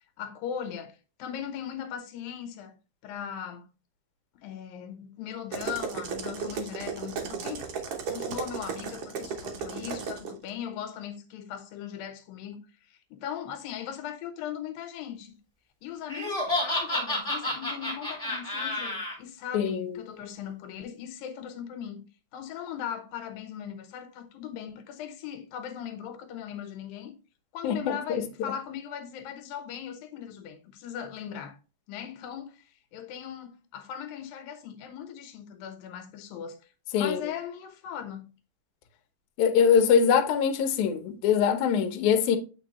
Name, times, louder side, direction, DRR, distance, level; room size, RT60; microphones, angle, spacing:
voice 1, 0.2-2.7 3.0-3.7 4.4-7.7 8.1-12.6 12.9-15.4 15.8-22.1 22.3-27.1 27.5-31.6 31.9-36.6 37.0-38.3, left 9 dB, 90° left, 2.6 m, -39 dB
sound 1, 5.5-10.3, right 6 dB, 85° right, 1.3 m, -34 dB
Laughter, 16.1-19.1, left 1 dB, 15° left, 1.9 m, -30 dB
voice 2, 19.5-20.0 27.6-28.2 36.9-37.2 39.4-42.4, left 7 dB, 75° left, 2.0 m, -23 dB
7.7 x 4.5 x 3.0 m
omnidirectional pair, 4.1 m